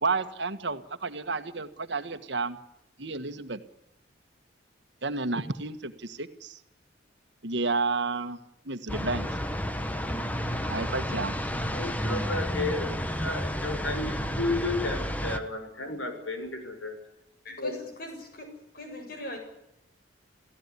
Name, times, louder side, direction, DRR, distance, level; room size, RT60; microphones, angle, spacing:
voice 1, 0.0-2.6 3.0-3.6 5.0-6.6 7.4-8.4 8.7-9.3 10.7-11.4, right 3 dB, 65° right, 9 dB, 1.7 m, -31 dB
sound 1, 8.9-15.4, equal, 10° left, 1.3 m, -31 dB
voice 2, 11.7-16.9 17.6-17.7, left 2 dB, 80° left, 6 dB, 6.6 m, -33 dB
voice 3, 17.4-19.4, left 1 dB, 50° left, 4 dB, 7.8 m, -41 dB
29.0 x 16.0 x 9.8 m, 0.84 s
head